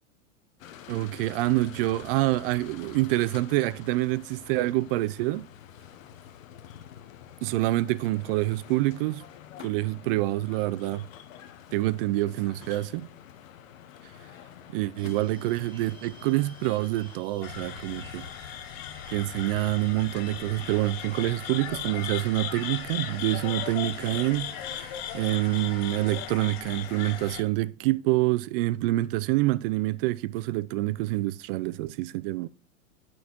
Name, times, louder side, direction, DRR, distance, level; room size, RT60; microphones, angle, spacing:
sound 1, 0.6-17.2, left 10 dB, 70° left, 1.0 m, -48 dB
voice 1, 0.9-5.5 7.4-9.2 9.6-11.1 11.7-13.1 14.7-18.3 19.1-32.5, right 18 dB, 45° right, 0.5 m, -27 dB
sound 2, 15.0-26.1, right 1 dB, 10° right, 1.3 m, -53 dB
sound 3, 17.4-27.4, left 10 dB, 50° left, 1.0 m, -37 dB
9.4 x 6.1 x 3.0 m
hypercardioid pair, 125°, 40 cm